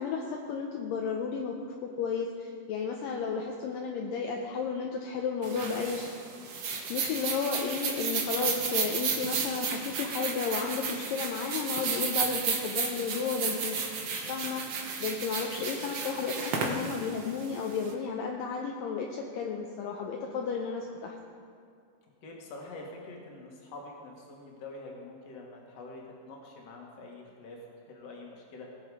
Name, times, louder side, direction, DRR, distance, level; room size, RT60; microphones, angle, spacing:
voice 1, 0.0-6.1 6.9-13.8 14.1-21.2, left 5 dB, 75° left, 0 dB, 2.3 m, -33 dB
sound 1, 5.4-17.9, right 5 dB, 60° right, 1.7 m, -33 dB
voice 2, 12.1-12.5 22.2-27.6 27.9-28.7, left 2 dB, 50° left, -1 dB, 2.5 m, -45 dB
19.5 x 7.0 x 4.9 m, 2.3 s
omnidirectional pair, 4.3 m